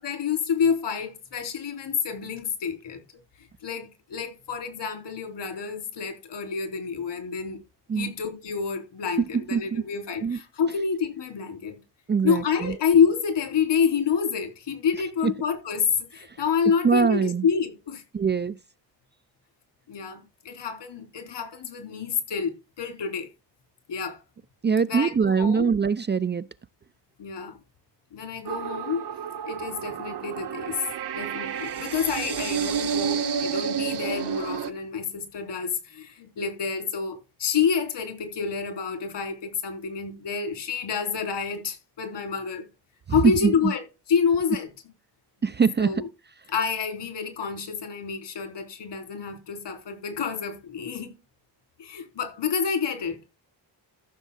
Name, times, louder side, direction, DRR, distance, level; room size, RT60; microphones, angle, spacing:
voice 1, 0.0-3.0 3.6-7.6 7.9-11.7 12.2-18.0 19.9-23.3 23.9-24.2 24.9-25.7 27.2-27.6 28.1-29.0 29.5-30.8 31.1-42.6 43.1-44.7 45.8-46.1 46.5-51.1 51.8-53.3, left 6 dB, 75° left, 3.6 m, -28 dB
voice 2, 9.5-9.8 10.2-10.4 12.1-12.7 15.2-15.3 16.8-17.4 18.1-18.6 24.6-26.5 43.2-43.5 45.4-45.9, right 6 dB, 25° right, 0.4 m, -22 dB
sound 1, 28.5-34.7, right 7 dB, 65° right, 1.3 m, -30 dB
14.0 x 6.3 x 3.7 m
cardioid pair, 75°, 43 cm